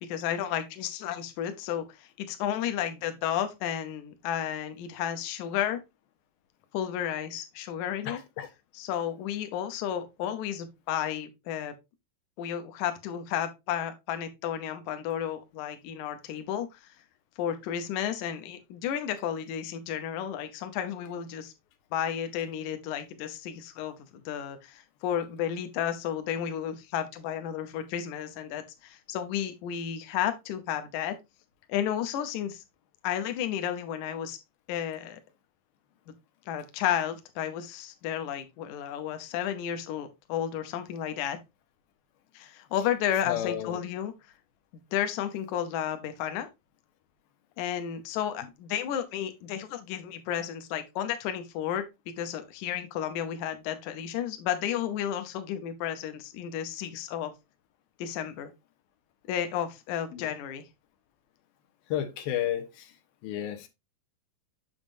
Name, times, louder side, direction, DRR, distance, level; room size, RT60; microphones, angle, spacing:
voice 1, 0.0-5.8 6.7-8.2 8.7-11.7 12.4-16.8 17.4-21.5 21.9-31.2 31.7-32.6 33.0-34.4 34.7-35.2 36.5-41.4 42.3-44.1 44.7-46.5 47.6-57.3 58.0-58.5 59.3-60.6, left 10 dB, 70° left, 2.0 m, -32 dB
voice 2, 8.1-8.5 43.3-43.8 60.1-60.3 61.9-62.9 63.2-63.7, left 11 dB, 85° left, 2.7 m, -32 dB
7.2 x 6.4 x 2.5 m
omnidirectional pair, 4.2 m